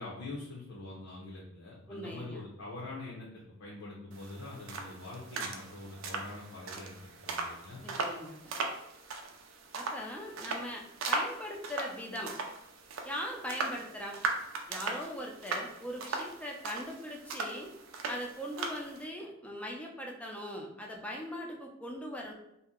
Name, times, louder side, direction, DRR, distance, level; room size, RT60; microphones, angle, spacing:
voice 1, 0.0-7.0 7.2-7.8, left 2 dB, 75° left, -5 dB, 0.7 m, -44 dB
voice 2, 1.9-2.5 7.8-8.5 9.7-12.3 13.0-14.2 14.7-17.7 18.0-22.3, equal, 5° left, 0 dB, 0.4 m, -40 dB
sound 1, 4.1-19.0, right 3 dB, 80° right, 0.5 m, -39 dB
2.7 x 2.1 x 3.6 m, 0.87 s
head